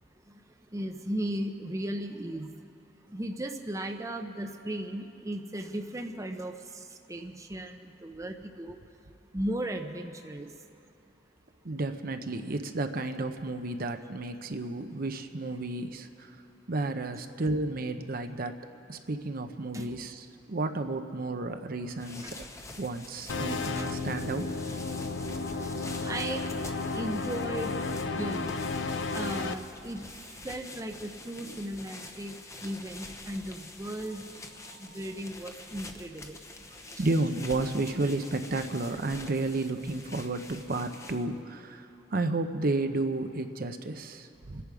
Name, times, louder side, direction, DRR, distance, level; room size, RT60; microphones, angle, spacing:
voice 1, 0.7-2.5 3.1-8.8 9.3-10.5 19.7-20.0 22.2-22.3 23.8-24.0 25.6-25.7 26.0-26.4 26.9-27.8 28.1-28.5 29.1-30.1 30.4-32.3 32.6-34.3 34.8-36.4 37.0-37.1, right 1 dB, 15° right, 4 dB, 0.7 m, -36 dB
voice 2, 11.6-16.3 16.7-18.6 18.9-22.2 22.8-24.6 31.4-31.6 34.6-35.0 37.0-44.6, right 2 dB, 50° right, 7 dB, 0.7 m, -32 dB
sound 1, 21.8-41.4, left 2 dB, 15° left, 0.8 m, -46 dB
sound 2, 23.3-29.5, left 3 dB, 80° left, 0.7 m, -33 dB
28.5 x 10.5 x 4.9 m, 2.7 s
head